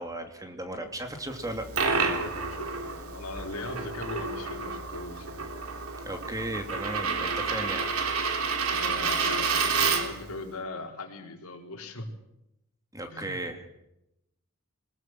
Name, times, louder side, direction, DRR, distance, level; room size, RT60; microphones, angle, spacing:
voice 1, 0.0-1.7 6.0-7.9 12.9-13.8, right 1 dB, 15° right, 5 dB, 2.8 m, -35 dB
Coin (dropping), 1.4-10.3, right 4 dB, 70° right, 3.2 m, -29 dB
voice 2, 2.1-5.4 8.7-12.1 13.1-13.4, left 2 dB, 75° left, 3 dB, 4.4 m, -40 dB
22.5 x 21.0 x 7.8 m, 0.87 s
head